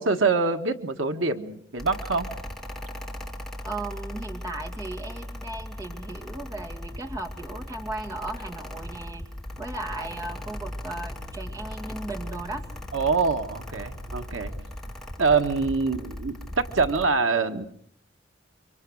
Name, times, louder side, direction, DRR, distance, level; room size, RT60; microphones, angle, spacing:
voice 1, 0.0-2.3 12.9-14.6 15.2-17.7, right 4 dB, 90° right, 7 dB, 1.6 m, -25 dB
Mechanical fan, 1.8-17.1, left 1 dB, ahead, 2.1 m, -38 dB
voice 2, 3.6-9.3 9.6-12.7, right 2 dB, 20° right, 2 dB, 2.2 m, -36 dB
sound 1, 9.4-14.5, equal, 50° right, 6.1 m, -43 dB
27.5 x 25.0 x 6.4 m, 0.64 s
head